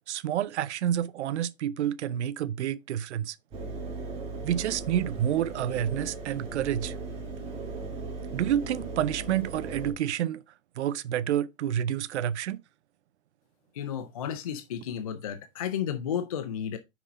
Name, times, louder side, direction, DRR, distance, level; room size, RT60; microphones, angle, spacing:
voice 1, 0.1-3.4 4.4-7.0 8.3-10.4 10.8-12.6, right 10 dB, 60° right, 0.6 m, -29 dB
Engine, 3.5-9.9, right 3 dB, 15° right, 1.8 m, -37 dB
voice 2, 13.7-16.8, left 9 dB, 30° left, 0.4 m, -32 dB
6.0 x 5.5 x 3.9 m
hypercardioid pair, 155°, 40 cm